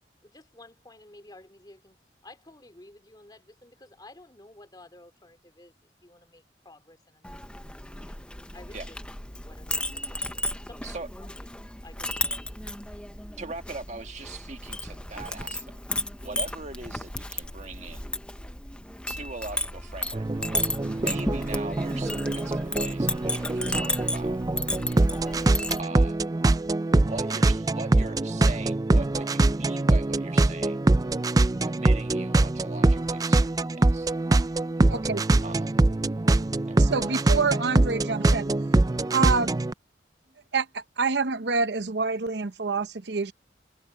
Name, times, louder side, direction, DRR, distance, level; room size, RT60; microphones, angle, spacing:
voice 1, 0.2-8.2 8.5-11.5 11.8-12.7, left 2 dB, 25° left, 2.7 m, -53 dB
Chink clink, 7.2-25.8, left 1 dB, 5° left, 0.9 m, -34 dB
voice 2, 13.4-15.8 16.2-18.1 19.1-20.3 20.7-24.4 25.8-26.2 26.9-30.8 31.6-34.1 35.4-35.8 36.7-36.8, right 3 dB, 40° right, 1.6 m, -40 dB
sound 1, 20.1-39.7, right 2 dB, 20° right, 0.4 m, -23 dB
voice 3, 34.9-35.2 36.8-38.5 39.1-39.5 40.5-43.3, right 4 dB, 75° right, 0.9 m, -27 dB
head